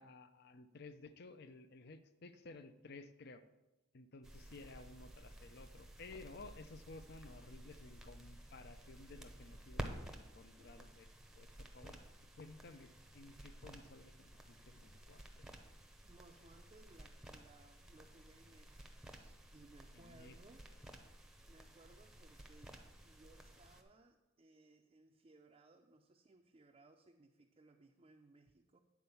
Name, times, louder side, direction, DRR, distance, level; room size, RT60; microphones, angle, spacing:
voice 1, 0.0-3.4 3.9-11.1 11.4-12.0 12.4-15.4 19.9-20.4, left 3 dB, 55° left, 11 dB, 0.6 m, -55 dB
sound 1, 4.2-23.8, right 1 dB, 5° right, 0.7 m, -53 dB
voice 2, 9.7-10.2 16.0-20.7 21.4-28.8, right 2 dB, 30° right, 2 dB, 0.5 m, -64 dB
9.4 x 4.4 x 6.9 m, 1.0 s
head